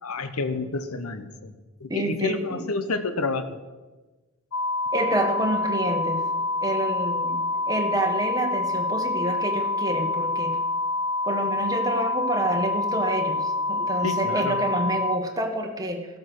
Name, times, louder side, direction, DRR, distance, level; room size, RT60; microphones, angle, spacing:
voice 1, 0.0-1.5 1.8-3.6 14.0-14.6, left 3 dB, 85° left, 10 dB, 0.9 m, -29 dB
voice 2, 1.9-2.7 4.9-6.2 6.6-7.4 7.7-10.6 11.2-16.1, right 1 dB, 15° right, 2 dB, 1.3 m, -28 dB
sound 1, 4.5-15.2, left 2 dB, 65° left, 0.5 m, -27 dB
15.0 x 7.5 x 6.1 m, 1.2 s
head